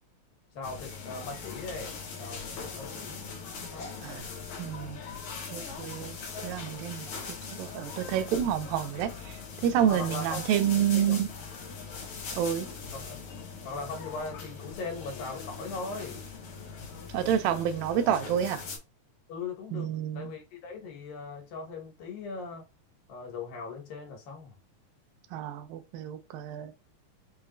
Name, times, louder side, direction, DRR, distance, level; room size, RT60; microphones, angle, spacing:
voice 1, 0.5-3.4 3.7-3.9 9.9-10.4 10.9-11.2 12.9-13.2 13.6-16.3 19.3-22.6 23.1-24.6, left 4 dB, 90° left, 3.2 m, -39 dB
sound 1, 0.6-18.8, left 5 dB, 65° left, 2.6 m, -41 dB
voice 2, 4.6-5.0 5.5-6.2 6.4-9.3 9.6-11.3 12.3-12.7 17.1-18.6 19.7-20.3 25.3-26.7, right 9 dB, 90° right, 2.4 m, -29 dB
6.7 x 2.9 x 2.6 m
omnidirectional pair, 3.9 m